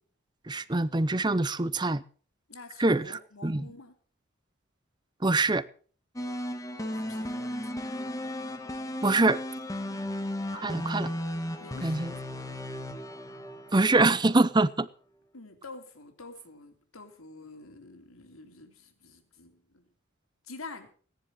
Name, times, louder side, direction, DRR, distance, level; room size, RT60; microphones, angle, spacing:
voice 1, 0.5-2.0 2.8-3.0 3.4-3.6 5.2-5.6 9.0-9.4 10.5-11.1 11.8-12.1 13.7-14.9, right 2 dB, 20° right, 0.6 m, -24 dB
voice 2, 2.5-3.9 6.8-7.4 11.6-12.2 15.3-19.9 20.4-20.9, left 3 dB, 85° left, 3.3 m, -47 dB
sound 1, 6.2-14.3, left 1 dB, 15° left, 1.4 m, -35 dB
17.5 x 10.5 x 6.1 m
head